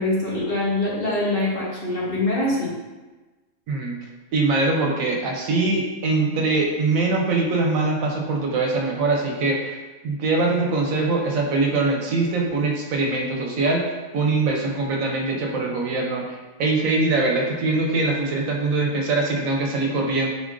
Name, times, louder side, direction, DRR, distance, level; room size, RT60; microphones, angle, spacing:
voice 1, 0.0-2.7, left 2 dB, 45° left, -6 dB, 1.0 m, -24 dB
voice 2, 4.3-13.8 14.1-20.3, right 3 dB, 80° right, 0 dB, 1.1 m, -23 dB
4.1 x 2.4 x 3.6 m, 1.2 s
omnidirectional pair, 1.4 m